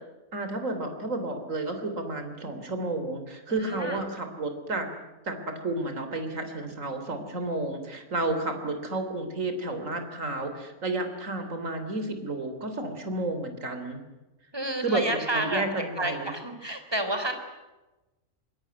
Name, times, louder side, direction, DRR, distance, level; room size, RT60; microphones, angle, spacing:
voice 1, 0.3-4.9 5.3-5.4 5.6-14.0 14.8-15.0 15.3-16.3, right 2 dB, 60° right, 7 dB, 3.8 m, -31 dB
voice 2, 3.5-4.0 14.5-15.6 16.0-17.3, right 1 dB, 15° right, 7 dB, 4.0 m, -30 dB
25.0 x 22.0 x 9.5 m, 1.1 s
omnidirectional pair, 1.5 m